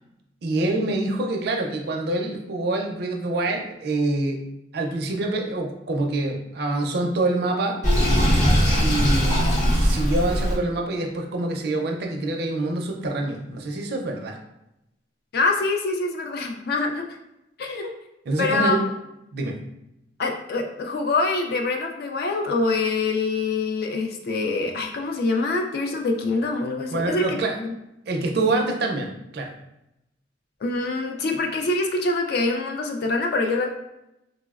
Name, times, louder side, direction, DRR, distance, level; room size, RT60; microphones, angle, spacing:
voice 1, 0.4-4.4 4.7-7.8 8.7-14.4 17.6-17.8 18.3-18.8 19.3-19.6 26.9-27.6 28.1-29.5, right 2 dB, 55° right, 2 dB, 0.4 m, -26 dB
Sink (filling or washing), 7.8-10.6, equal, 40° left, 0.7 m, -20 dB
voice 2, 15.3-17.1 17.6-17.9 18.4-18.8 20.2-27.7 30.6-33.7, left 3 dB, 55° left, 3 dB, 0.3 m, -25 dB
3.8 x 2.0 x 2.3 m, 0.88 s
head